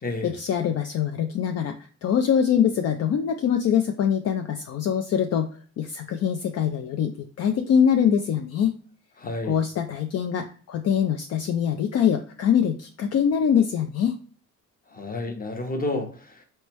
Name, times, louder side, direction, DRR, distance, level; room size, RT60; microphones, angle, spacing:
voice 1, 0.2-8.8 9.5-14.2, left 8 dB, 55° left, 6 dB, 0.5 m, -23 dB
voice 2, 9.2-9.6 14.9-16.4, left 2 dB, 30° left, 5 dB, 1.0 m, -30 dB
4.4 x 3.2 x 3.0 m, 0.43 s
cardioid pair, 90°, 30 cm